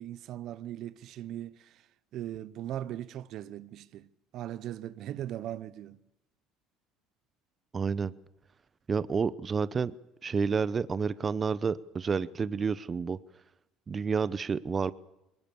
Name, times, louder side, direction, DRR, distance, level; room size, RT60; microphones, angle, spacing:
voice 1, 0.0-1.8 2.1-4.1 4.3-6.0, right 12 dB, 60° right, 0.9 m, -39 dB
voice 2, 7.7-8.1 8.9-9.9 10.2-13.2 13.9-14.9, right 5 dB, 30° right, 0.7 m, -29 dB
21.5 x 19.5 x 7.0 m
supercardioid pair, 90°, 0 cm